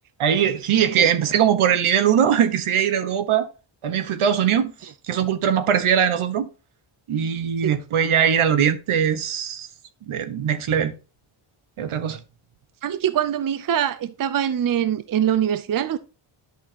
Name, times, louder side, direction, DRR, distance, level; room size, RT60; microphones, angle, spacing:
voice 1, 0.2-3.5 3.8-6.5 7.1-9.7 10.1-10.9 11.8-12.2, right 8 dB, 75° right, 1.2 m, -21 dB
voice 2, 12.8-16.0, right 10 dB, 45° right, 0.6 m, -23 dB
10.5 x 6.4 x 2.9 m
wide cardioid pair, 145°, 50 cm